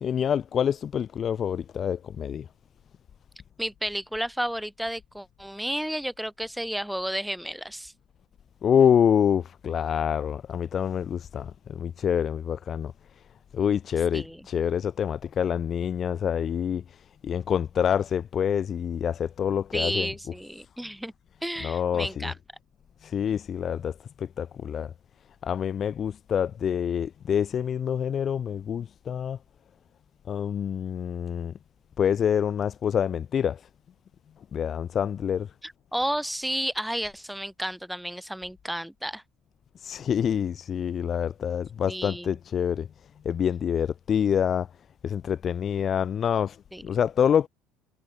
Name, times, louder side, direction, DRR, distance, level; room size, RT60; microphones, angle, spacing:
voice 1, 0.0-2.5 8.6-12.9 13.5-20.3 21.6-22.3 23.0-24.9 25.4-29.4 30.3-31.5 32.0-33.6 34.5-35.5 39.8-42.9 43.2-44.7 45.0-46.6 46.8-47.5, left 8 dB, 45° left, 1.3 m, -26 dB
voice 2, 3.6-7.9 14.1-14.4 19.7-21.1 21.4-22.3 35.6-39.2 41.9-42.4 46.7-46.8, equal, ahead, 0.7 m, -32 dB
supercardioid pair, 85°, 0 cm